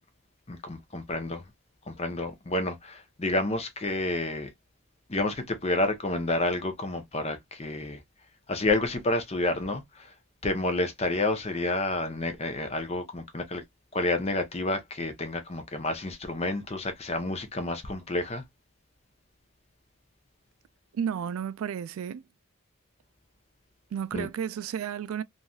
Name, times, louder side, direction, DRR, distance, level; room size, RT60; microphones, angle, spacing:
voice 1, 0.5-1.4 1.9-4.5 5.1-8.0 8.5-10.1 10.4-13.6 13.9-18.4 24.1-24.3, left 2 dB, 30° left, 0.7 m, -29 dB
voice 2, 20.9-22.2 23.9-25.2, right 8 dB, 80° right, 0.3 m, -32 dB
3.1 x 2.6 x 2.2 m
head